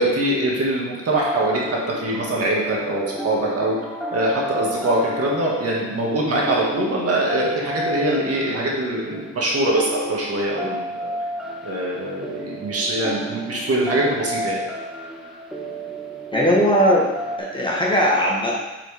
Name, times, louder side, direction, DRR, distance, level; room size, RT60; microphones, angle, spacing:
voice 1, 0.0-1.6 1.9-3.8 4.1-11.1 11.6-14.6, right 1 dB, 50° right, -3 dB, 1.9 m, -23 dB
sound 1, 1.1-17.4, right 1 dB, ahead, 0.9 m, -32 dB
voice 2, 16.3-17.1 17.4-18.6, equal, 15° left, -4 dB, 1.2 m, -18 dB
8.1 x 4.8 x 3.5 m, 1.1 s
cardioid pair, 135°, 31 cm